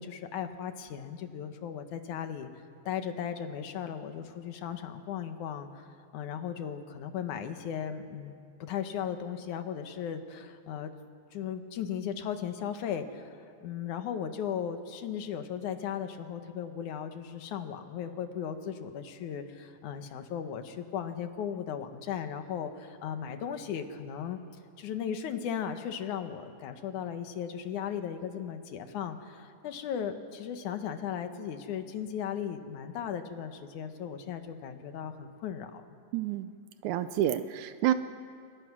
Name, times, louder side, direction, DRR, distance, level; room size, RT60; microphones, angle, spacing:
voice 1, 0.0-2.5 2.9-5.9 6.1-8.3 8.6-10.9 11.3-24.4 24.8-35.9, left 8 dB, 80° left, 8 dB, 2.7 m, -36 dB
voice 2, 36.1-36.5 36.8-37.9, right 12 dB, 80° right, 11 dB, 2.1 m, -28 dB
27.5 x 22.0 x 6.2 m, 2.4 s
omnidirectional pair, 3.4 m